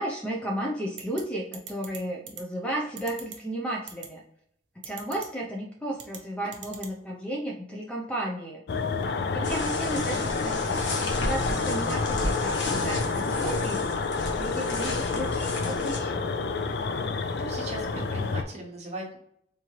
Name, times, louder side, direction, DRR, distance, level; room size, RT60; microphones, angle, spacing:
voice 1, 0.0-4.2 4.8-8.6 9.3-14.1 14.3-16.3, right 1 dB, 5° left, -1 dB, 0.5 m, -34 dB
sound 1, 1.0-1.2 1.5-2.0 2.3-2.4 3.0-3.4 3.9-4.1 4.8-5.3 6.0-6.2 6.5-6.9, right 8 dB, 65° right, 0.8 m, -40 dB
sound 2, 8.7-18.4, left 4 dB, 60° left, 0.4 m, -29 dB
sound 3, 9.4-16.0, left 1 dB, 85° left, 1.1 m, -34 dB
voice 2, 17.4-19.2, right 2 dB, 40° right, -1 dB, 1.1 m, -38 dB
3.6 x 3.0 x 2.8 m, 0.69 s
head